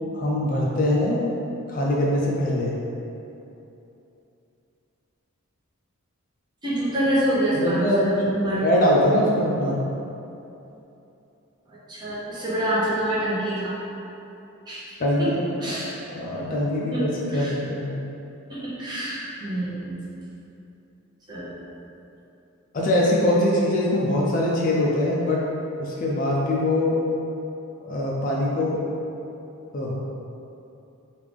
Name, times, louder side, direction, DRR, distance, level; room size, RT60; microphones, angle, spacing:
voice 1, 0.1-1.4 1.7-2.8 7.5-9.8 15.0-15.3 16.1-17.9 22.7-25.4 25.8-27.0 27.9-28.8 29.7-30.0, left 1 dB, 35° left, -4 dB, 0.4 m, -23 dB
voice 2, 6.6-8.6 11.9-13.7 14.7-15.3 15.6-15.9 16.9-17.0 17.3-17.5 18.5-20.0 21.3-21.6, right 1 dB, 20° right, -10 dB, 0.8 m, -26 dB
3.2 x 2.5 x 3.4 m, 2.8 s
head